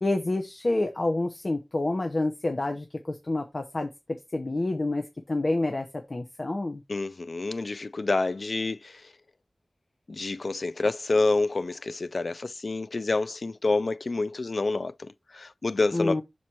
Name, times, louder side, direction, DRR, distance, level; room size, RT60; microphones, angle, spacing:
voice 1, 0.0-3.9 4.3-6.8 15.9-16.2, left 2 dB, 50° left, 0.9 m, -28 dB
voice 2, 6.9-9.1 10.1-16.2, left 3 dB, 65° left, 0.5 m, -28 dB
6.2 x 4.2 x 4.4 m
wide cardioid pair, 75°, 0 cm